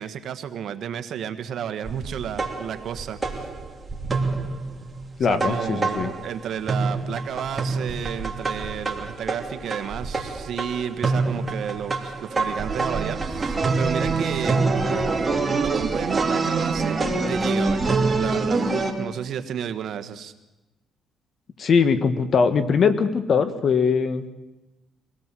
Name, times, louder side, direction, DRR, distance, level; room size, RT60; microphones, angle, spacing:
voice 1, 0.0-3.5 5.3-14.9 15.5-20.3, right 9 dB, 70° right, 9 dB, 1.5 m, -32 dB
sound 1, 1.8-6.4 6.7-18.9, right 3 dB, 25° right, 3.0 m, -26 dB
voice 2, 5.2-6.1 21.6-24.3, left 5 dB, 55° left, 11 dB, 1.7 m, -21 dB
24.0 x 17.0 x 7.7 m, 1.0 s
cardioid pair, 90°, 0 cm